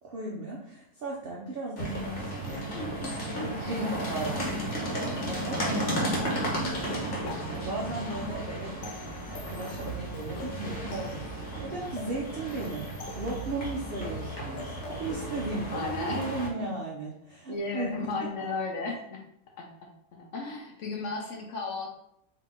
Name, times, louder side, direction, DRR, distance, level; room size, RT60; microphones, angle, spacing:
voice 1, 0.0-2.7 3.4-7.1 7.5-8.7 9.3-18.1, right 2 dB, 80° right, -3 dB, 0.5 m, -36 dB
sound 1, 1.8-16.5, right 1 dB, 40° left, 1.1 m, -34 dB
voice 2, 2.7-3.7 6.1-6.7 15.7-16.3 17.5-19.2 19.6-21.9, left 3 dB, 60° left, 0 dB, 0.8 m, -35 dB
sound 2, 7.3-15.6, left 3 dB, 80° left, 1.2 m, -45 dB
3.7 x 2.8 x 3.7 m, 0.73 s
omnidirectional pair, 1.8 m